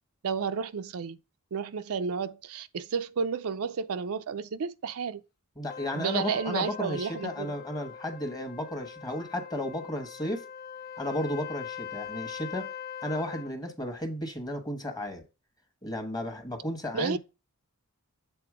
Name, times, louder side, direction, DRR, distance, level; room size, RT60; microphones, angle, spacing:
voice 1, 0.2-1.2 1.5-5.2 5.9-7.5 16.9-17.2, right 6 dB, 70° right, 0.5 m, -31 dB
voice 2, 5.6-10.5 11.0-12.7 13.0-15.2 15.8-17.2, left 1 dB, 20° left, 1.2 m, -34 dB
Trumpet, 5.7-13.5, left 8 dB, 45° left, 0.4 m, -42 dB
7.8 x 3.8 x 4.9 m
head